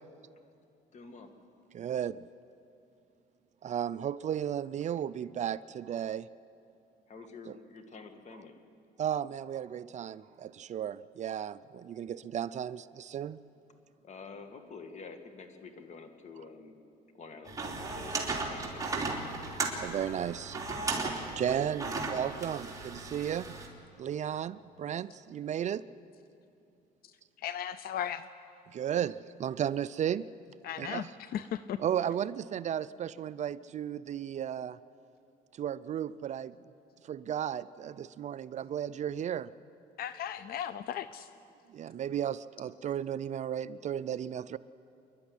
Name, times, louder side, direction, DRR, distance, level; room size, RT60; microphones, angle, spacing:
voice 1, 0.9-1.3 7.1-8.6 14.0-16.7 17.1-19.0, left 4 dB, 45° left, 7 dB, 2.2 m, -48 dB
voice 2, 1.7-2.3 3.6-6.3 7.5-7.6 9.0-13.4 19.6-20.9 21.4-23.6 24.0-25.8 28.7-30.2 30.8-31.1 31.8-34.8 35.5-36.6 37.0-39.5 41.7-44.6, right 9 dB, 45° right, 16 dB, 0.5 m, -34 dB
sound 1, 17.4-23.7, right 3 dB, 20° right, 3.3 m, -36 dB
voice 3, 27.4-28.3 30.6-31.1 31.3-31.8 40.0-41.3, left 10 dB, 65° left, 14 dB, 0.6 m, -36 dB
27.0 x 11.5 x 9.9 m, 2.6 s
cardioid pair, 110°, 17 cm